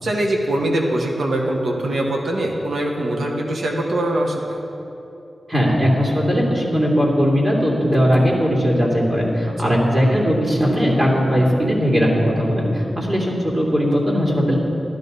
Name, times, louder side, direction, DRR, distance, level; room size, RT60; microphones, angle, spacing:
voice 1, 0.0-4.6 9.6-9.8 11.3-11.6, right 1 dB, 75° right, 0 dB, 1.4 m, -23 dB
voice 2, 5.5-14.6, equal, 30° right, -4 dB, 2.9 m, -18 dB
12.0 x 11.5 x 4.0 m, 2.9 s
wide cardioid pair, 75°, 0 cm